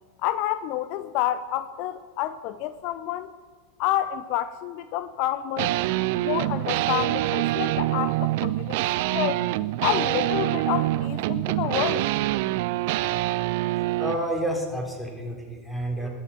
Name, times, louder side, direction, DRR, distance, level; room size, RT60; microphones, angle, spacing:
voice 1, 0.2-3.3 3.8-5.7 6.2-8.8 9.1-9.4 9.8-12.1, left 13 dB, 50° left, 14 dB, 0.5 m, -29 dB
sound 1, 5.6-14.3, right 16 dB, 60° right, 0.4 m, -25 dB
voice 2, 13.8-16.1, right 1 dB, 5° left, 0 dB, 3.6 m, -30 dB
20.5 x 7.4 x 5.7 m, 1.5 s
figure-of-eight pair, 85°, 0 cm